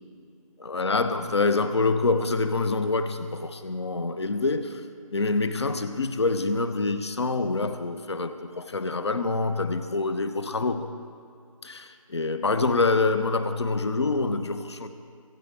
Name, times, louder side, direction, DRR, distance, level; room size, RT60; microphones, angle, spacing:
voice 1, 0.6-4.8 5.1-10.9 11.6-14.9, left 3 dB, 50° left, 10 dB, 1.0 m, -26 dB
23.0 x 9.1 x 4.8 m, 2.4 s
figure-of-eight pair, 150°, 18 cm